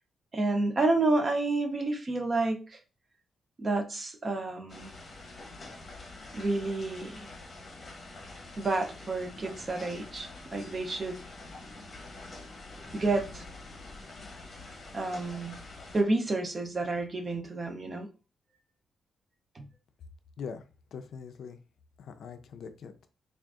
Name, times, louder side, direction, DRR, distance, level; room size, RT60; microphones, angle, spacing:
voice 1, 0.3-2.8 3.6-4.9 6.3-7.3 8.6-11.2 12.9-13.5 14.9-15.6 15.9-18.1 19.6-19.7, right 2 dB, 25° right, 6 dB, 0.5 m, -30 dB
sound 1, 4.7-16.0, left 2 dB, 30° left, 0.9 m, -46 dB
voice 2, 20.9-21.6 22.0-23.1, left 6 dB, 60° left, 8 dB, 0.4 m, -42 dB
3.7 x 2.4 x 3.5 m, 0.33 s
wide cardioid pair, 170°, 0 cm